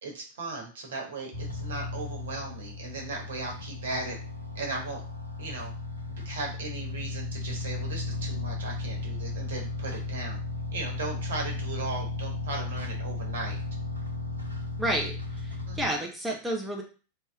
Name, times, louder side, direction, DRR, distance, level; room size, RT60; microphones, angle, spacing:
voice 1, 0.0-4.2 4.5-5.0 5.4-5.7 6.2-10.4 10.7-13.6 15.7-15.8, right 3 dB, 60° right, 1 dB, 1.2 m, -37 dB
sound 1, 1.3-15.9, left 3 dB, 85° right, 1.0 m, -35 dB
voice 2, 14.8-16.8, right 1 dB, 5° right, -1 dB, 0.8 m, -31 dB
3.2 x 2.8 x 3.5 m, 0.36 s
figure-of-eight pair, 90°, 0 cm